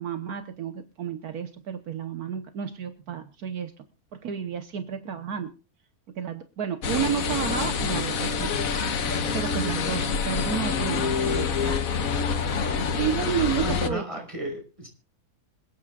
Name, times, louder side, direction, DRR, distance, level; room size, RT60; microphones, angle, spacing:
voice 1, 0.0-3.7 4.1-5.5 6.1-8.5 9.3-12.2 13.0-14.0, right 8 dB, 75° right, 9 dB, 1.6 m, -31 dB
sound 1, 6.8-13.9, left 5 dB, 65° left, 1.4 m, -26 dB
voice 2, 13.6-14.9, right 1 dB, 20° right, 2 dB, 5.4 m, -33 dB
26.5 x 9.3 x 2.4 m, 0.34 s
omnidirectional pair, 1.6 m